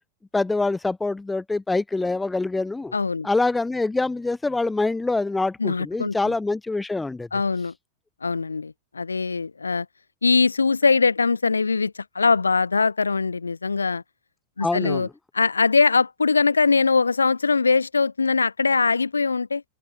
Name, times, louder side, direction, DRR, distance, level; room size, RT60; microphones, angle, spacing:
voice 1, 0.3-2.9 3.2-7.3 14.6-15.1, left 3 dB, 10° left, 0.9 m, -25 dB
voice 2, 2.9-3.3 5.6-6.2 7.3-7.7 8.2-9.9 10.2-14.0 14.6-15.1 15.3-19.6, left 4 dB, 75° left, 0.4 m, -21 dB
open air
figure-of-eight pair, 90°, 0 cm